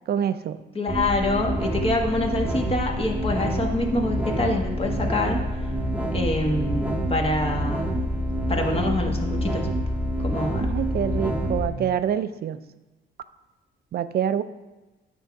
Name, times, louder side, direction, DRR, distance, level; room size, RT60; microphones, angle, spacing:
voice 1, 0.1-0.6 10.6-12.6 13.9-14.4, right 9 dB, 55° right, 13 dB, 0.5 m, -26 dB
voice 2, 0.7-5.4 6.1-7.8 8.5-9.7 10.2-10.7, left 2 dB, 30° left, 2 dB, 1.3 m, -26 dB
sound 1, 0.9-11.7, equal, 5° right, 1.0 m, -27 dB
9.1 x 3.6 x 5.8 m, 1.1 s
cardioid pair, 90°, 20 cm